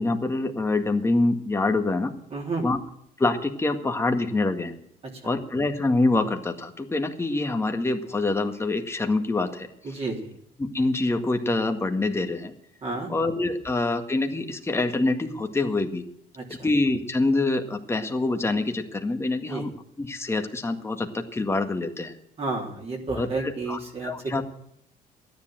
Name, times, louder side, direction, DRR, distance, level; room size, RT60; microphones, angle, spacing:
voice 1, 0.0-2.1 2.6-2.8 3.2-4.8 5.2-9.7 10.6-12.5 13.1-16.0 16.5-19.7 20.0-22.1 23.1-24.5, left 2 dB, 15° left, 5 dB, 1.9 m, -25 dB
voice 2, 2.3-2.6 9.8-10.3 12.8-13.1 16.4-16.5 19.5-19.7 22.4-24.1, right 3 dB, 35° right, 0 dB, 3.6 m, -31 dB
13.5 x 10.5 x 7.6 m, 0.74 s
cardioid pair, 110°, 17 cm